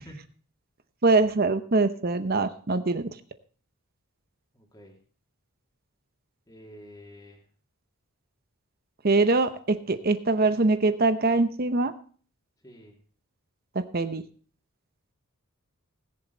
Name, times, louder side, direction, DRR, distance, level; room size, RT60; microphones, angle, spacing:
voice 1, 1.0-3.1 9.0-11.9 13.9-14.2, right 3 dB, 45° right, 11 dB, 0.8 m, -23 dB
voice 2, 4.5-4.9 6.5-7.4 12.6-12.9, equal, 15° left, -1 dB, 2.7 m, -48 dB
20.5 x 7.3 x 3.9 m, 0.42 s
head